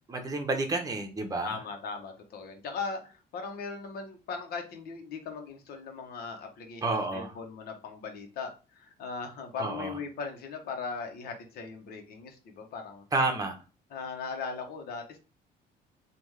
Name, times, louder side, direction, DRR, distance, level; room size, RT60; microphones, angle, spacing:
voice 1, 0.0-1.6 6.8-7.3 9.6-10.0 13.1-13.6, right 2 dB, 20° right, 3 dB, 0.9 m, -30 dB
voice 2, 1.4-13.0 13.9-15.2, left 5 dB, 65° left, 4 dB, 0.9 m, -39 dB
3.4 x 2.4 x 3.1 m, 0.33 s
cardioid pair, 110°, 17 cm